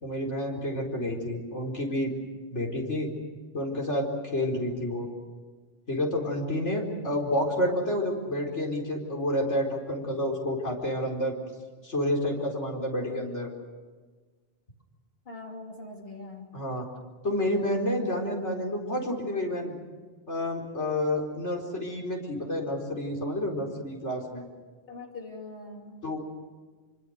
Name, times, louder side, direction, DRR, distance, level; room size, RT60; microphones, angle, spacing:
voice 1, 0.0-2.1 2.5-3.1 3.5-5.1 5.9-11.3 11.8-13.5 16.5-16.9 17.2-19.7 20.3-24.4 26.0-26.2, left 1 dB, 75° left, 0 dB, 4.8 m, -29 dB
voice 2, 15.3-16.5 24.9-26.0, left 2 dB, 55° left, 0 dB, 3.2 m, -42 dB
26.0 x 25.0 x 6.6 m, 1.4 s
omnidirectional pair, 1.2 m